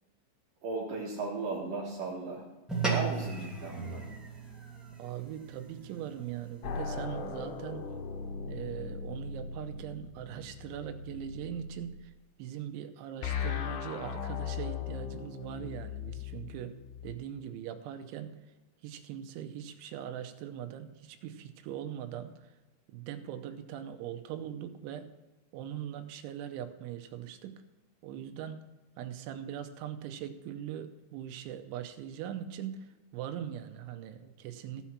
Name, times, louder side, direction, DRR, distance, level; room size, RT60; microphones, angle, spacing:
voice 1, 0.6-2.4 2.9-4.1, right 3 dB, 60° right, -2 dB, 2.6 m, -36 dB
sound 1, 2.7-7.3, right 5 dB, ahead, 0.5 m, -37 dB
voice 2, 5.0-7.8 8.5-12.1 12.4-16.8 17.0-18.4 18.8-22.6 22.9-25.1 25.5-27.6 28.0-28.6 29.0-34.8, right 10 dB, 85° right, 9 dB, 3.1 m, -41 dB
sound 2, 6.6-12.0 13.2-17.2, left 6 dB, 80° left, 3.4 m, -38 dB
15.5 x 5.7 x 6.0 m, 1.1 s
omnidirectional pair, 5.4 m